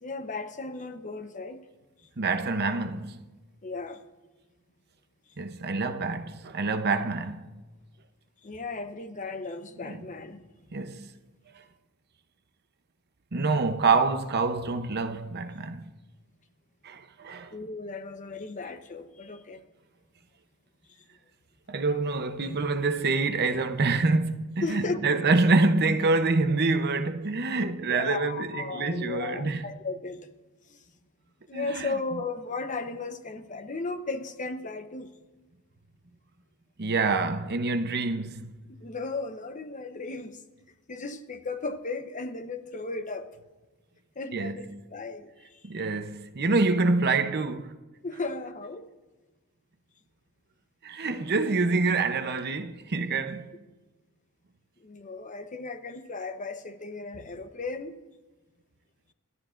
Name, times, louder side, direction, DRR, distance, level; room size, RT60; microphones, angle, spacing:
voice 1, 0.0-1.6 3.6-4.0 8.4-10.4 17.5-19.6 24.6-25.2 27.9-30.3 30.7-30.8 31.5-35.1 38.8-40.4 40.9-43.3 44.2-45.6 48.0-48.9 54.8-58.0, left 3 dB, 35° left, 0.9 m, -35 dB
voice 2, 2.2-3.3 5.4-7.5 9.8-10.0 10.7-11.1 13.3-15.9 16.8-17.5 21.7-29.7 31.5-31.9 36.8-38.6 44.3-44.8 45.6-47.8 50.8-53.6, right 3 dB, 50° right, 0.8 m, -26 dB
27.0 x 12.5 x 2.6 m
head